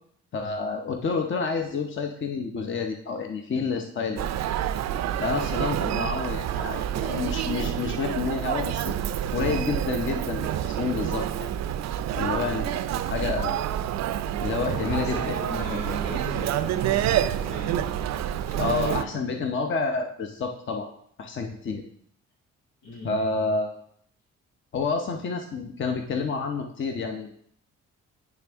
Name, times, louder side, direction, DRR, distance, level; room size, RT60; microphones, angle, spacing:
voice 1, 0.3-4.3 5.2-8.9 9.3-11.5 12.2-13.6 14.4-15.4 15.7-15.8 18.6-20.9 21.2-21.8 23.0-23.8 24.7-27.3, left 4 dB, 40° left, 4 dB, 0.8 m, -29 dB
Human voice, 4.2-19.0, right 11 dB, 60° right, 0.4 m, -28 dB
voice 2, 14.7-17.9 18.5-19.4 22.8-23.2, equal, 85° left, -2 dB, 2.2 m, -38 dB
10.0 x 3.4 x 3.5 m, 0.65 s
cardioid pair, 90°, 30 cm